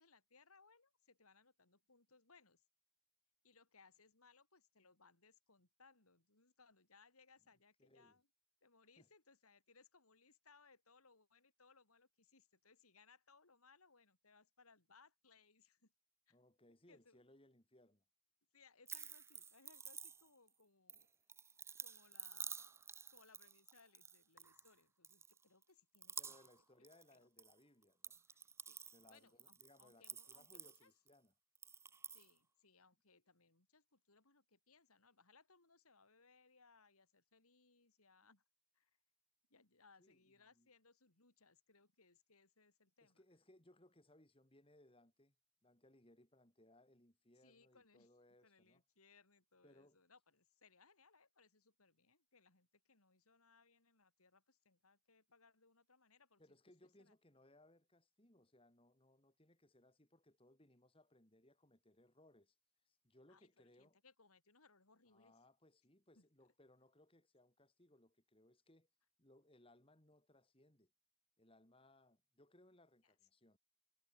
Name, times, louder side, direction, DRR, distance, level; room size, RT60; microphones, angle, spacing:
voice 1, 0.0-2.6 3.4-8.3 8.6-15.9 16.3-16.4 16.9-17.2 18.5-21.1 21.8-22.8 23.1-26.5 27.1-27.3 28.3-30.9 32.1-38.4 38.7-38.9 39.5-43.2 47.4-48.1 48.4-56.6 56.8-57.1 63.3-65.3 66.2-66.3 73.0-73.2, left 4 dB, 85° left, 4.2 m, -69 dB
voice 2, 7.8-8.2 9.0-9.1 16.3-18.0 26.2-28.2 28.9-31.3 40.0-40.2 40.5-40.7 43.0-45.3 45.6-48.8 49.6-50.0 56.4-62.6 62.8-64.0 65.1-68.9 69.2-70.9 71.4-73.6, left 1 dB, 25° left, 3.3 m, -68 dB
sound 1, 18.9-20.5 20.9-24.7 25.0-25.6 25.9-26.6 26.8-27.5 27.8-31.1 31.6-32.3, right 6 dB, 10° right, 0.5 m, -51 dB
head